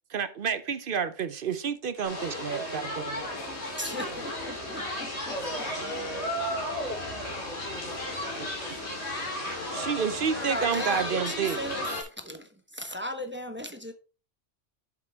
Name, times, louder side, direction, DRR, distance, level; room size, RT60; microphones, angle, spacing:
voice 1, 0.1-3.3 8.4-8.5 9.7-11.6, right 7 dB, 55° right, 0.8 m, -30 dB
voice 2, 2.0-2.8 3.9-4.8 5.1-8.0 8.3-8.9 9.7-9.9, equal, 75° left, 4.4 m, -40 dB
sound 1, 2.0-12.0, left 1 dB, 60° left, 2.8 m, -34 dB
voice 3, 3.8-5.1 10.4-11.8 12.2-12.4 12.8-13.9, equal, 10° right, 0.9 m, -36 dB
7.5 x 7.2 x 3.5 m
omnidirectional pair, 1.3 m